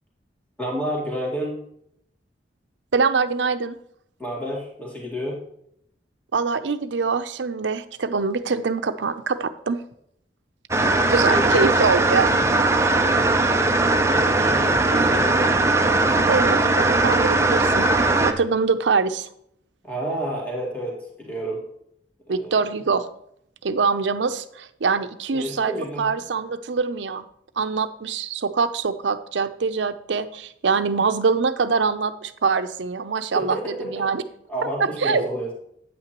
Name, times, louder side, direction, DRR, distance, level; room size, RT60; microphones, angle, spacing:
voice 1, 0.6-1.6 4.2-5.4 11.3-11.8 14.1-15.7 19.8-21.7 22.3-22.6 25.3-26.1 33.3-34.1 34.5-35.5, equal, 10° left, -3 dB, 2.2 m, -30 dB
voice 2, 2.9-3.8 6.3-9.8 11.1-12.4 16.3-17.9 18.2-19.3 22.3-23.1 23.6-25.7 26.0-27.2 27.6-34.2 34.8-35.2, right 4 dB, 85° right, 11 dB, 0.6 m, -24 dB
sound 1, 10.7-18.3, right 2 dB, 15° right, 0.6 m, -19 dB
9.1 x 8.7 x 3.0 m, 0.71 s
head